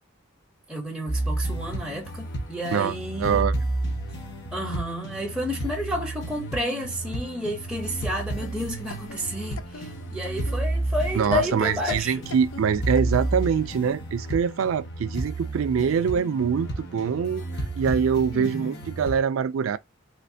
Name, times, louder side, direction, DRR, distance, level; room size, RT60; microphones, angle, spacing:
voice 1, 0.7-3.5 4.5-12.2 18.3-18.8, left 1 dB, 5° right, 0.7 m, -31 dB
sound 1, 1.1-19.2, right 2 dB, 55° left, 1.0 m, -31 dB
voice 2, 3.2-3.5 11.1-17.4 17.8-19.8, right 7 dB, 80° right, 0.4 m, -24 dB
sound 2, 7.7-13.6, left 3 dB, 75° left, 0.5 m, -44 dB
3.2 x 3.1 x 2.7 m
head